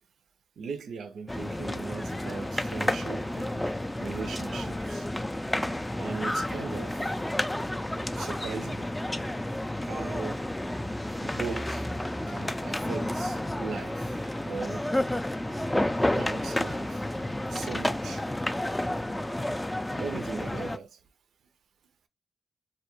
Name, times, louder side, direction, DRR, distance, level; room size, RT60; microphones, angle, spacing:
voice 1, 0.6-5.1 6.0-7.1 8.2-8.9 9.8-10.4 11.2-11.8 12.3-14.2 14.5-14.9 16.1-17.0 17.5-18.2 20.0-21.0, right 5 dB, 80° right, 0.3 m, -38 dB
sound 1, 1.3-20.8, left 1 dB, 15° left, 0.3 m, -31 dB
2.2 x 2.1 x 2.9 m
supercardioid pair, 50°, 0 cm